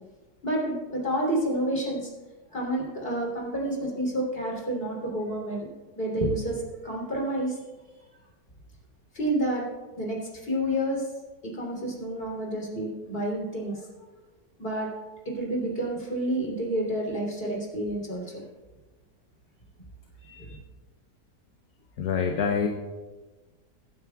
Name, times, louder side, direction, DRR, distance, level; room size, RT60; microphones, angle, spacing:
voice 1, 0.4-2.1 2.5-5.7 5.9-7.6 9.1-9.7 10.0-11.1 11.4-13.9 14.6-14.9 15.2-18.4 20.2-20.6, right 1 dB, 30° left, -3 dB, 3.4 m, -29 dB
voice 2, 22.0-22.7, left 6 dB, 65° left, 3 dB, 1.3 m, -25 dB
24.0 x 9.4 x 2.3 m, 1.2 s
omnidirectional pair, 1.8 m